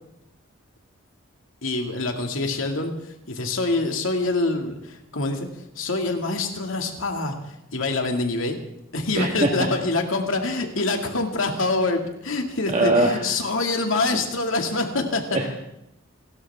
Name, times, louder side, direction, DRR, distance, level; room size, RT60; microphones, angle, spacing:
voice 1, 1.6-8.6 8.9-15.2, left 2 dB, 80° left, 4 dB, 2.3 m, -25 dB
voice 2, 9.2-9.7 12.7-13.2 15.3-15.5, right 2 dB, 35° right, 0 dB, 1.6 m, -21 dB
29.0 x 13.0 x 3.6 m, 0.84 s
head